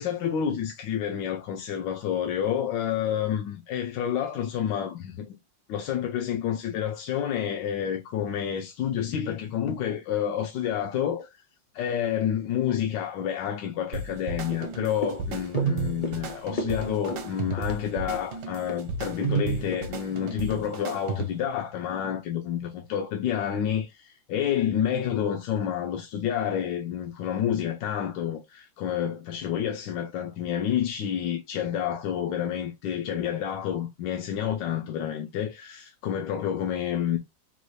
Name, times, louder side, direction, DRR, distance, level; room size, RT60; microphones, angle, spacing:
voice 1, 0.0-5.3 5.7-11.3 11.7-37.2, left 9 dB, 80° left, 1.2 m, -29 dB
sound 1, 13.9-21.5, right 5 dB, 75° right, 1.3 m, -32 dB
sound 2, 14.5-21.0 21.3-21.4, left 2 dB, 45° left, 0.6 m, -38 dB
4.1 x 2.3 x 3.1 m
omnidirectional pair, 2.0 m